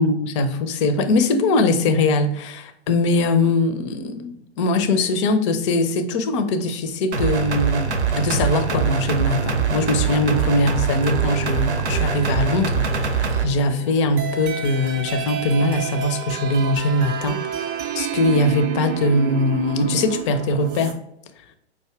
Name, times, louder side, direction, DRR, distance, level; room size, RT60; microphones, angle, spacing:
voice 1, 0.0-17.4 18.0-21.0, left 2 dB, 30° left, 0.4 m, -21 dB
sound 1, 7.1-13.4, right 5 dB, 85° right, 0.7 m, -23 dB
sound 2, 8.0-20.9, right 8 dB, 25° right, 0.5 m, -32 dB
4.8 x 2.6 x 3.2 m
figure-of-eight pair, 110°, 34 cm